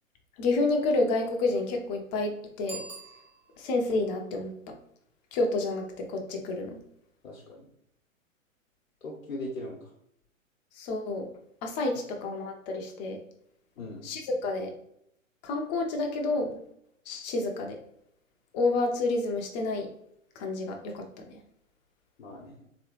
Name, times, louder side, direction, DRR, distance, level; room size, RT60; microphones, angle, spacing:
voice 1, 0.4-2.3 2.6-2.8 3.6-4.5 5.3-5.8 6.1-6.8 10.8-11.3 11.6-13.2 14.0-14.7 15.4-16.5 17.1-17.7 18.5-19.9 20.4-21.0, left 3 dB, 30° left, 3 dB, 0.7 m, -29 dB
Bicycle bell, 2.6-3.8, right 3 dB, 15° right, 1.0 m, -44 dB
voice 2, 7.2-7.6 9.0-9.9 13.8-14.1 22.2-22.7, left 1 dB, 75° left, -1 dB, 1.0 m, -39 dB
3.5 x 3.1 x 3.0 m, 0.75 s
hypercardioid pair, 120°, 40 cm